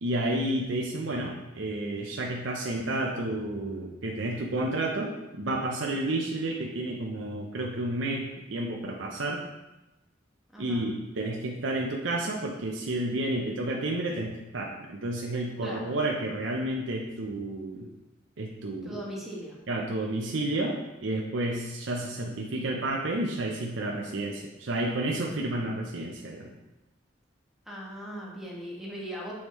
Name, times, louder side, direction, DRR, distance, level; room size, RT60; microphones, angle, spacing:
voice 1, 0.0-8.2 8.5-9.4 10.6-17.9 18.4-18.9 19.7-26.5, right 1 dB, 80° right, 0 dB, 0.7 m, -31 dB
voice 2, 10.5-10.9 15.6-15.9 18.8-19.6 27.6-29.3, equal, ahead, -5 dB, 1.3 m, -39 dB
7.1 x 4.8 x 3.1 m, 1.0 s
head